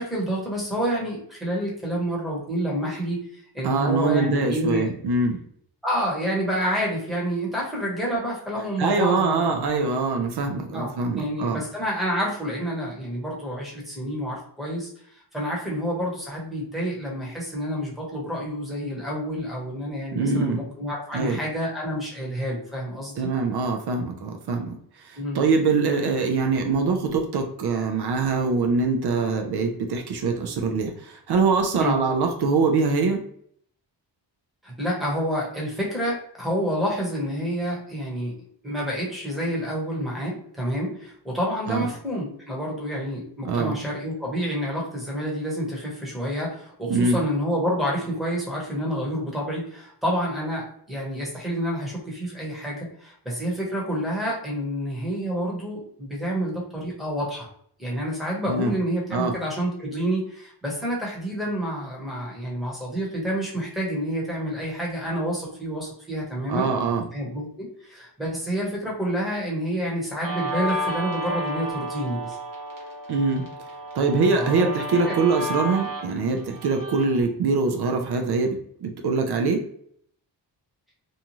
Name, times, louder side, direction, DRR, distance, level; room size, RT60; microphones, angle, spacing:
voice 1, 0.0-4.9 5.8-9.6 10.7-23.1 25.1-25.4 31.8-32.0 34.6-38.3 38.6-57.5 57.8-66.7 67.1-72.4 74.4-74.7 75.1-75.2, equal, ahead, -4 dB, 1.0 m, -28 dB
voice 2, 3.6-5.4 8.8-11.6 20.1-20.6 21.1-21.4 23.2-33.2 41.7-41.9 43.4-43.8 46.9-47.2 58.5-58.8 59.1-59.3 66.5-67.1 73.1-73.5 73.9-79.6, right 4 dB, 65° right, 4 dB, 0.5 m, -23 dB
Guitar, 70.2-77.2, equal, 50° right, 0.9 m, -32 dB
2.7 x 2.3 x 2.9 m, 0.65 s
wide cardioid pair, 120°, 43 cm